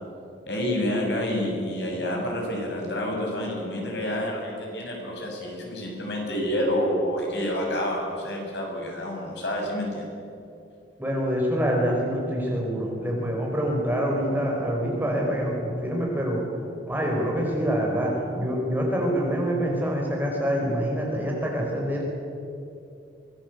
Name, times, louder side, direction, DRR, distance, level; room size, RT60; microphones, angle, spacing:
voice 1, 0.5-10.1, left 1 dB, 70° left, -1 dB, 7.1 m, -28 dB
voice 2, 11.0-16.4 16.9-22.0, equal, 10° right, -2 dB, 5.0 m, -26 dB
24.5 x 19.0 x 8.3 m, 2.7 s
head